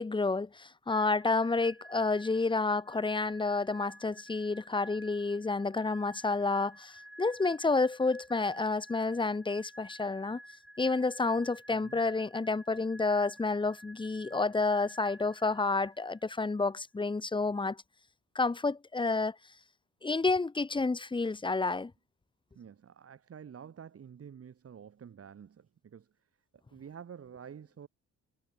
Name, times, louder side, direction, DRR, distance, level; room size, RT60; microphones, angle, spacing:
voice 1, 0.0-10.4 10.8-17.8 18.3-19.3 20.0-21.9, left 3 dB, 15° left, 1.0 m, -30 dB
sound 1, 0.9-16.5, equal, ahead, 4.1 m, -52 dB
voice 2, 22.5-26.1 26.5-27.9, right 7 dB, 50° right, 4.2 m, -49 dB
cardioid pair, 90°, 30 cm